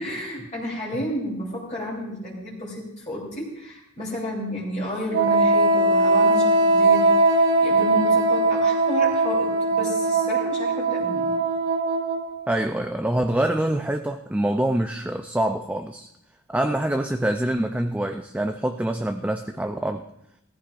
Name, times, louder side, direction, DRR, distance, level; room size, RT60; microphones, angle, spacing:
voice 1, 0.0-11.3, equal, 35° left, -6 dB, 3.3 m, -32 dB
Wind instrument woodwind instrument, 5.1-12.5, right 2 dB, 50° right, 1.0 m, -20 dB
voice 2, 12.5-16.1 16.5-20.0, right 1 dB, 5° right, 5 dB, 0.4 m, -25 dB
18.0 x 14.5 x 2.5 m, 0.81 s
head